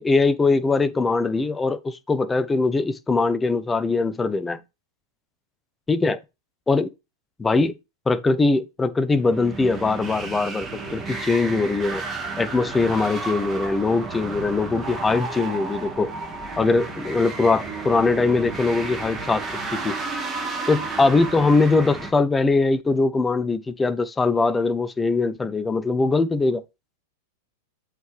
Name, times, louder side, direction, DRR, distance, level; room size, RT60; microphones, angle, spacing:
voice 1, 0.0-4.6 5.9-6.2 6.7-6.9 7.4-7.7 8.1-12.0 12.4-16.1 16.6-19.4 19.8-20.0 20.7-26.6, left 3 dB, 15° left, 0.8 m, -21 dB
sound 1, 9.2-22.1, right 3 dB, 20° right, 3.1 m, -32 dB
8.0 x 4.9 x 3.3 m
hypercardioid pair, 100°, 0 cm